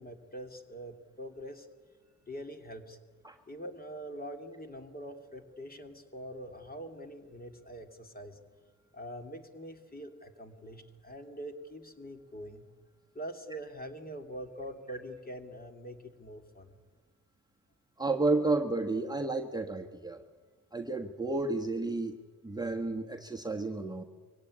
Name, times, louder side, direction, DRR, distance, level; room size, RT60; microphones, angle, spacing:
voice 1, 0.0-1.7 2.3-3.0 3.5-8.4 8.9-12.6 13.1-16.8, equal, 25° left, 5 dB, 3.0 m, -44 dB
voice 2, 18.0-20.2 20.7-22.2 22.4-24.0, right 3 dB, 10° right, 2 dB, 1.4 m, -31 dB
23.5 x 17.0 x 9.9 m, 1.4 s
cardioid pair, 80°, 35 cm